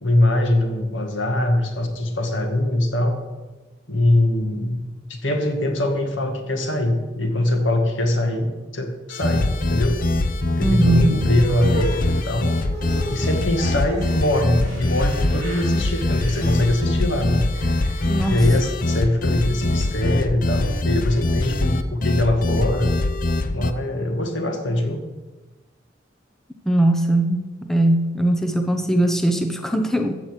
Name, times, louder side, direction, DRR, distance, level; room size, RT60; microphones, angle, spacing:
voice 1, 0.0-3.2 3.9-4.8 5.1-10.0 10.6-12.5 13.1-17.4 18.2-22.9 23.5-25.0, left 1 dB, 80° left, 4 dB, 2.1 m, -22 dB
sound 1, 9.1-23.7, left 2 dB, 45° left, 0.7 m, -23 dB
voice 2, 10.6-11.2 18.1-18.4 26.6-30.1, right 1 dB, ahead, 5 dB, 0.8 m, -20 dB
sound 2, 11.4-18.8, right 2 dB, 35° right, 5.4 m, -35 dB
14.5 x 5.8 x 8.2 m, 1.2 s
head